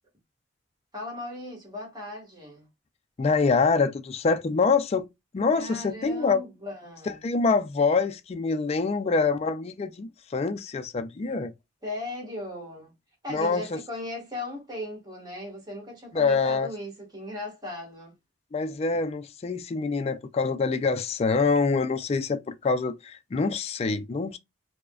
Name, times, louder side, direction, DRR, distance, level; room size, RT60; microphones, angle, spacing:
voice 1, 0.9-2.7 5.6-7.2 11.8-12.9 13.2-18.1, left 1 dB, 25° right, 1.5 m, -37 dB
voice 2, 3.2-5.1 5.3-6.4 7.1-11.5 13.3-13.6 16.1-16.7 18.5-24.4, left 4 dB, 35° left, 0.3 m, -25 dB
4.7 x 2.1 x 2.3 m
head